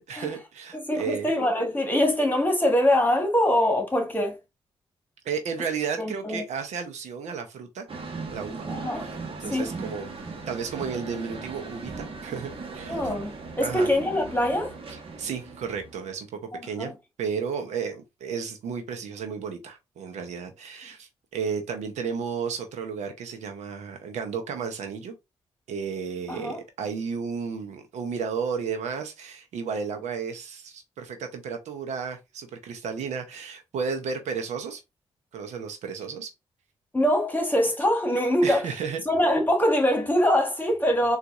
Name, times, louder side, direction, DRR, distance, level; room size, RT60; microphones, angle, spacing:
voice 1, 0.1-1.3 5.2-7.9 8.3-8.7 9.0-10.1 10.5-13.0 13.6-14.0 14.9-16.9 17.2-25.1 25.7-34.8 35.3-36.3 38.4-39.0, right 6 dB, 80° right, 0.7 m, -33 dB
voice 2, 0.7-4.4 6.0-6.4 8.7-9.1 9.5-9.7 12.9-14.7 16.5-16.9 26.3-26.6 36.9-38.7 39.0-41.2, left 1 dB, 15° left, 1.4 m, -23 dB
sound 1, 7.9-16.2, right 4 dB, 50° right, 1.1 m, -38 dB
4.0 x 2.5 x 2.4 m
supercardioid pair, 55°, 12 cm